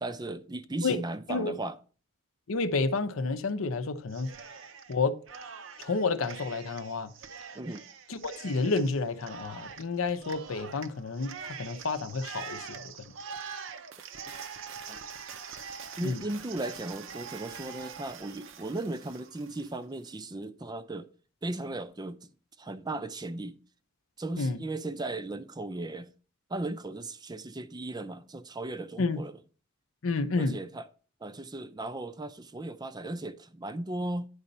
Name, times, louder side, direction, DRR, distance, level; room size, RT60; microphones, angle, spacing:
voice 1, 0.0-1.8 7.5-7.8 14.9-15.0 16.0-21.1 21.4-22.2 22.6-23.6 24.2-26.1 26.5-29.4 30.4-30.9 31.2-34.3, right 2 dB, 20° right, 0.4 m, -36 dB
voice 2, 2.5-4.3 4.9-5.2 5.8-7.1 8.1-12.9 16.0-16.2 24.4-24.6 29.0-29.2 30.0-30.6, left 3 dB, 80° left, 0.7 m, -30 dB
Cheering, 4.1-5.0 5.3-19.7, right 6 dB, 65° right, 0.6 m, -44 dB
9.6 x 4.0 x 5.4 m
head